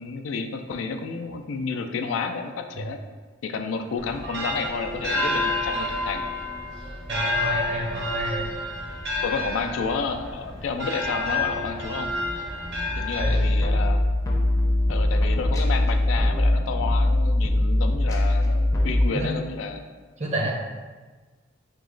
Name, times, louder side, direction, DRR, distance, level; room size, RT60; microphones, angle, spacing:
voice 1, 0.0-3.0 3.4-6.3 9.2-12.2 13.0-14.0 14.9-19.8, left 5 dB, 85° left, 6 dB, 0.3 m, -31 dB
sound 1, 4.0-13.9, left 2 dB, 65° right, 1.0 m, -29 dB
voice 2, 7.1-8.5 13.2-13.5 19.1-19.3 20.2-20.5, right 1 dB, 35° right, -2 dB, 0.7 m, -29 dB
sound 2, 13.2-19.1, left 1 dB, 20° left, 0.5 m, -21 dB
3.0 x 2.8 x 3.8 m, 1.4 s
head